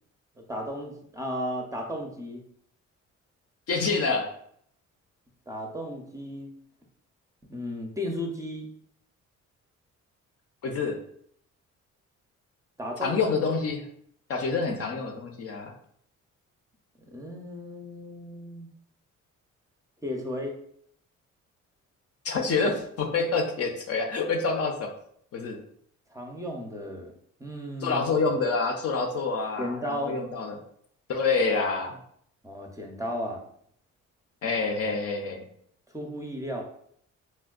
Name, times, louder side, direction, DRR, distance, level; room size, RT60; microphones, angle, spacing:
voice 1, 0.4-2.5 5.5-6.5 7.5-8.7 12.8-13.2 17.1-18.7 20.0-20.5 26.1-28.0 29.6-30.2 32.4-33.4 35.9-36.6, equal, 10° right, 1 dB, 0.5 m, -34 dB
voice 2, 3.7-4.3 10.6-11.0 13.0-13.9 14.3-15.7 22.2-24.9 25.3-25.6 27.8-30.6 31.1-32.0 34.4-35.4, left 4 dB, 50° left, 3 dB, 0.6 m, -27 dB
4.3 x 2.2 x 2.4 m, 0.67 s
cardioid pair, 90°, 30 cm